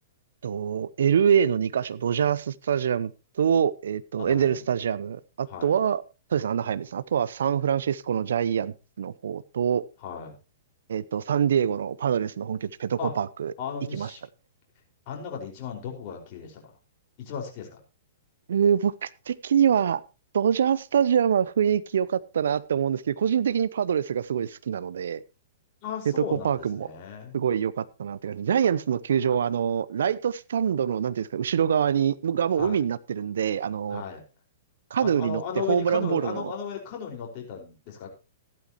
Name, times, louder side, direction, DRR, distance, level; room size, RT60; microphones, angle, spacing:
voice 1, 0.4-3.1 3.4-6.0 6.3-9.8 10.9-13.5 13.9-14.1 18.5-20.0 20.3-25.2 26.1-26.9 27.3-34.0 34.9-35.4 35.7-36.5, right 8 dB, 65° right, 18 dB, 0.7 m, -25 dB
voice 2, 4.2-4.6 5.5-5.7 10.0-10.3 13.0-13.1 13.6-14.2 15.1-16.6 17.2-17.8 25.8-27.4 32.6-32.8 33.9-34.2 35.0-38.1, left 7 dB, 40° left, 1 dB, 5.0 m, -35 dB
15.0 x 12.0 x 3.0 m, 0.30 s
figure-of-eight pair, 110°, 0 cm